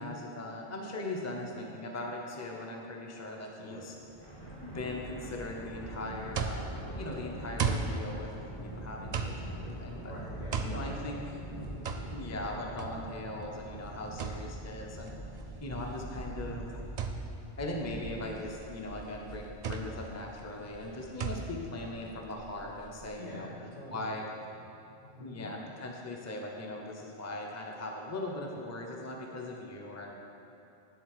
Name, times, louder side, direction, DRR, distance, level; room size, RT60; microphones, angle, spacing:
voice 1, 0.0-3.9 4.4-8.3 8.6-10.1 10.6-11.2 12.1-15.1 15.6-16.7 17.6-23.5 23.9-24.2 25.2-30.1, left 1 dB, 15° left, 0 dB, 0.7 m, -39 dB
voice 2, 3.6-3.9 9.9-11.0 11.3-11.4 20.8-21.1 23.2-24.1 24.4-24.6 25.0-25.4, left 1 dB, 85° left, -7 dB, 2.3 m, -47 dB
Thunder, 4.1-20.6, right 1 dB, 40° left, 2.1 m, -44 dB
sound 1, 5.8-23.1, right 5 dB, 50° right, 0.5 m, -38 dB
11.0 x 3.9 x 6.6 m, 2.9 s
omnidirectional pair, 1.1 m